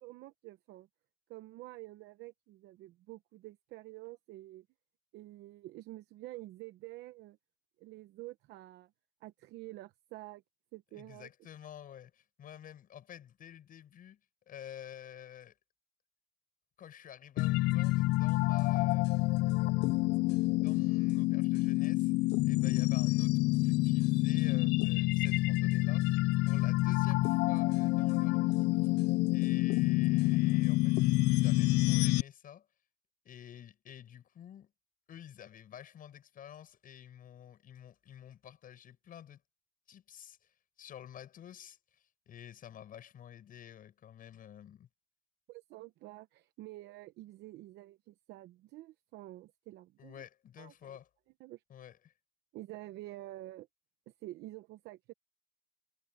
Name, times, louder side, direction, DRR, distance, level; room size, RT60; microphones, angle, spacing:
voice 1, 0.0-0.9 1.3-4.7 5.1-7.4 7.8-8.9 9.2-10.4 10.7-11.3 45.5-50.3 50.6-51.0 51.4-51.6 52.5-53.7 54.1-55.1, right 17 dB, 85° right, 0.9 m, -48 dB
voice 2, 10.9-14.2 14.5-15.5 16.8-20.0 20.6-22.1 22.4-26.2 26.5-29.0 29.3-32.7 33.2-34.7 35.1-39.4 39.9-40.4 40.8-44.9 50.0-51.1 51.7-52.0, left 10 dB, 55° left, 7.2 m, -50 dB
sound 1, 17.4-32.2, left 20 dB, 90° left, 0.5 m, -28 dB
cardioid pair, 110°, 17 cm